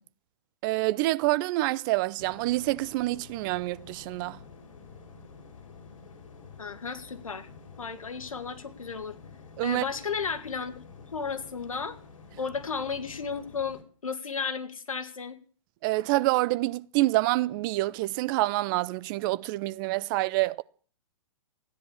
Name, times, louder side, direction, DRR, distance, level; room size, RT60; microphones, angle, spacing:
voice 1, 0.6-4.4 9.6-9.8 15.8-20.6, right 19 dB, 40° right, 0.7 m, -27 dB
sound 1, 2.2-13.8, left 5 dB, 70° left, 4.5 m, -49 dB
voice 2, 6.6-7.5 7.8-9.2 9.6-10.8 11.1-12.0 12.4-15.4, left 5 dB, 90° left, 2.1 m, -34 dB
15.5 x 10.5 x 7.3 m
hypercardioid pair, 125°, 17 cm